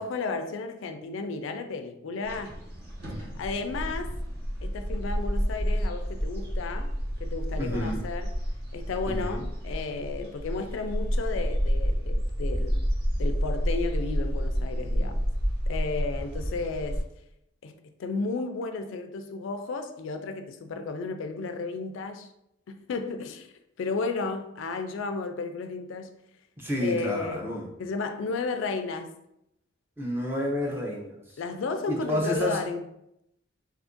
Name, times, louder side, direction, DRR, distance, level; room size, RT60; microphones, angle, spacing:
voice 1, 0.0-2.6 3.4-4.2 4.6-6.9 7.2-8.3 8.7-12.8 13.1-15.2 15.7-17.0 17.6-17.7 18.0-22.3 22.7-23.5 23.8-26.2 26.8-27.5 27.8-29.2 31.4-32.8, left 4 dB, 75° left, 0.3 m, -33 dB
sound 1, 2.2-17.0, equal, 50° right, 1.0 m, -29 dB
voice 2, 7.6-8.0 9.1-9.4 26.6-27.7 30.0-31.2 31.9-32.6, equal, 10° right, 0.5 m, -30 dB
2.8 x 2.5 x 3.6 m
head